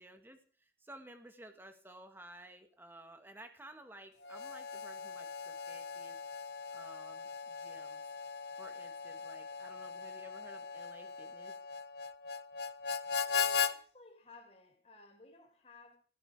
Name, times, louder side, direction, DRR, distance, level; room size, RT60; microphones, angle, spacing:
voice 1, 0.0-6.2 6.7-8.1 8.6-11.5, right 1 dB, 10° right, 2.0 m, -55 dB
Harmonica, 4.2-13.7, left 6 dB, 65° left, 0.9 m, -39 dB
voice 2, 13.3-16.0, left 3 dB, 35° left, 4.4 m, -58 dB
17.0 x 15.0 x 5.0 m
head